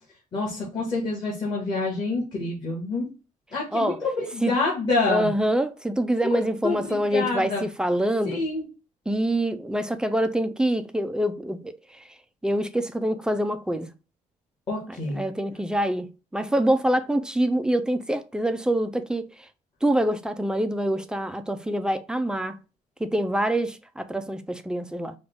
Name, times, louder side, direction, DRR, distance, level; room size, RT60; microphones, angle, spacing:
voice 1, 0.3-3.1 3.5-5.3 6.3-7.6 8.2-8.6 14.7-15.2, left 3 dB, 35° left, 1.7 m, -27 dB
voice 2, 5.1-8.4 9.1-12.0 12.4-13.9 14.9-16.1 16.3-19.3 19.8-22.6 23.0-25.1, right 1 dB, 5° right, 0.3 m, -25 dB
5.1 x 2.3 x 3.4 m
cardioid pair, 165°, 14 cm